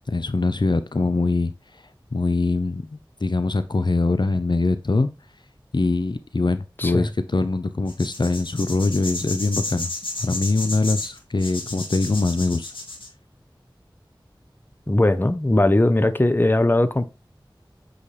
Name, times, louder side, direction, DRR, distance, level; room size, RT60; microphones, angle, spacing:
voice 1, 0.1-1.5 2.1-5.1 5.7-9.9 10.2-12.7, left 3 dB, 60° left, 0.6 m, -23 dB
voice 2, 6.8-7.1 14.9-17.0, left 1 dB, 25° left, 0.7 m, -19 dB
sound 1, 7.9-13.1, left 2 dB, 75° left, 2.0 m, -32 dB
8.3 x 4.0 x 3.3 m
wide cardioid pair, 45°, 9 cm